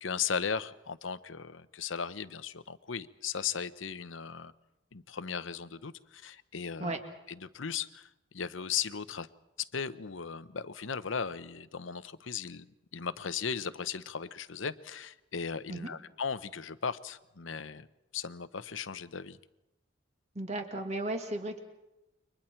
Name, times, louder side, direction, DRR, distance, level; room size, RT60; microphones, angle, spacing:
voice 1, 0.0-4.5 4.9-7.0 7.4-8.1 8.3-9.3 9.6-12.7 12.9-17.9 18.1-19.4, left 6 dB, 85° left, 0.8 m, -37 dB
voice 2, 20.4-21.6, right 2 dB, 35° right, 2.1 m, -35 dB
29.5 x 24.0 x 4.5 m
head